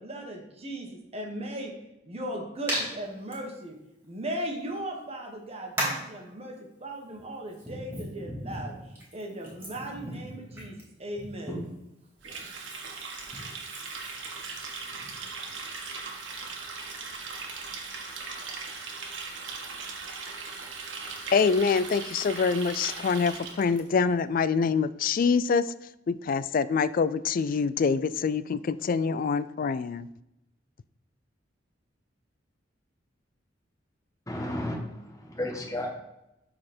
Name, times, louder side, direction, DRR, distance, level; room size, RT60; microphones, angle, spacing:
voice 1, 0.0-1.7 2.0-3.8 4.0-8.7 9.1-11.6, right 1 dB, 35° right, 1 dB, 1.5 m, -37 dB
Hands, 2.7-2.8 3.3-3.4 4.6-4.7 5.8-6.1 7.0-11.8 12.2-15.5, right 1 dB, 10° right, 3.5 m, -37 dB
Water tap faucet, 12.2-23.8, right 4 dB, 80° right, 1.5 m, -39 dB
voice 2, 21.3-25.7 26.1-30.1, left 5 dB, 45° left, 16 dB, 0.3 m, -25 dB
voice 3, 34.3-35.9, left 1 dB, 20° left, 0 dB, 1.5 m, -33 dB
12.5 x 4.3 x 4.4 m, 0.89 s
head